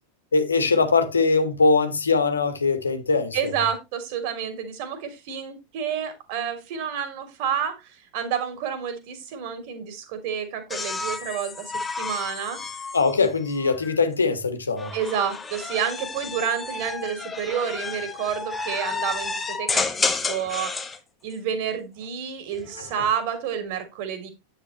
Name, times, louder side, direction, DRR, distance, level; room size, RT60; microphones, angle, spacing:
voice 1, 0.3-3.5 12.9-14.9 22.9-23.0, left 4 dB, 75° left, 1.7 m, -21 dB
voice 2, 3.3-12.9 14.9-20.8 21.2-24.3, right 8 dB, 45° right, 3.3 m, -29 dB
sound 1, 10.7-14.0 14.8-21.0 22.4-23.0, left 4 dB, 15° left, 1.4 m, -31 dB
10.0 x 8.6 x 3.2 m
figure-of-eight pair, 90°, 0 cm